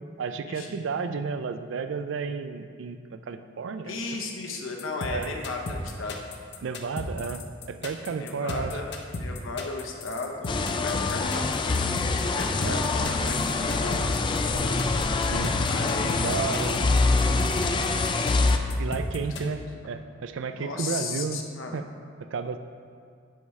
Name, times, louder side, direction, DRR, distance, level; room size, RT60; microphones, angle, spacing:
voice 1, 0.2-3.9 5.1-5.3 6.6-7.4 7.7-8.7 12.6-12.8 15.2-15.5 16.2-16.8 18.8-21.4 21.7-21.9 22.3-22.6, right 5 dB, 65° right, 9 dB, 0.4 m, -32 dB
voice 2, 3.8-6.2 8.2-8.9 9.1-14.7 15.7-16.8 17.4-17.9 19.2-19.5 20.5-21.8, left 3 dB, 85° left, 2 dB, 0.9 m, -36 dB
sound 1, 4.8-19.4, left 3 dB, 60° left, 0.7 m, -35 dB
sound 2, 10.5-18.6, left 3 dB, 25° left, 0.3 m, -25 dB
10.5 x 4.7 x 3.2 m, 2.1 s
head